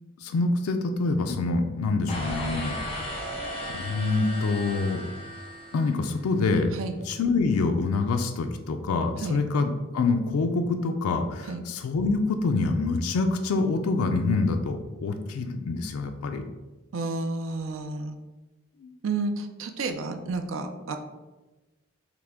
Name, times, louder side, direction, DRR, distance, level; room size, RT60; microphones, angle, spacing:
voice 1, 0.2-3.1 3.7-5.0 5.7-6.7 7.1-16.4 18.8-18.9, left 3 dB, 90° left, 5 dB, 0.4 m, -26 dB
sound 1, 2.1-6.3, equal, 30° left, 1.0 m, -36 dB
voice 2, 16.9-18.2 19.0-21.0, right 3 dB, 65° right, 6 dB, 0.4 m, -31 dB
5.7 x 2.1 x 3.5 m, 1.1 s
head